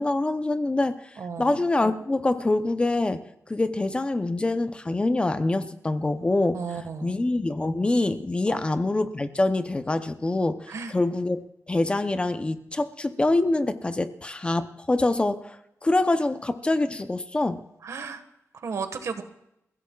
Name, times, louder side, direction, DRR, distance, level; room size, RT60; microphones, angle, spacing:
voice 1, 0.0-3.2 3.5-6.6 7.0-17.6, left 2 dB, 20° left, 9 dB, 0.7 m, -25 dB
voice 2, 1.2-1.6 6.5-7.1 8.5-8.6 10.7-10.9 17.8-18.2 18.5-19.2, right 5 dB, 70° right, 8 dB, 1.5 m, -34 dB
29.5 x 16.0 x 2.4 m, 0.83 s
wide cardioid pair, 155°, 5 cm